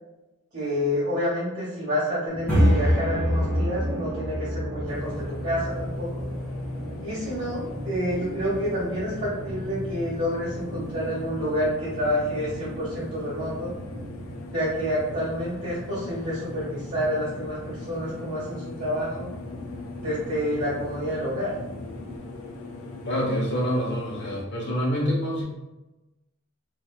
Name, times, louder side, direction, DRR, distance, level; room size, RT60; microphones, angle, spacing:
voice 1, 0.5-6.3 7.0-13.7 14.5-19.3 20.0-21.5, equal, 45° right, -10 dB, 1.4 m, -28 dB
sound 1, 2.3-22.2, equal, 10° left, 1.2 m, -31 dB
sound 2, 4.9-24.4, left 3 dB, 75° left, 0.5 m, -41 dB
voice 2, 23.1-25.4, equal, 55° left, -2 dB, 1.0 m, -26 dB
4.1 x 2.7 x 2.4 m, 1.0 s
head